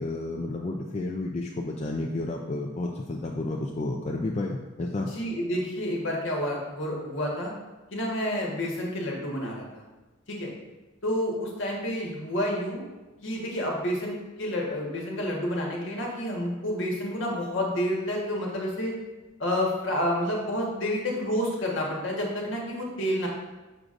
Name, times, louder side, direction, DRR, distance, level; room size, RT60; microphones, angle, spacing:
voice 1, 0.0-5.1, left 2 dB, 35° left, 0 dB, 0.4 m, -31 dB
voice 2, 5.1-7.5 7.9-9.8 10.3-10.5 11.0-12.8 13.2-19.0 19.4-23.3, equal, 65° left, -2 dB, 1.4 m, -29 dB
6.4 x 6.0 x 2.5 m, 1.2 s
head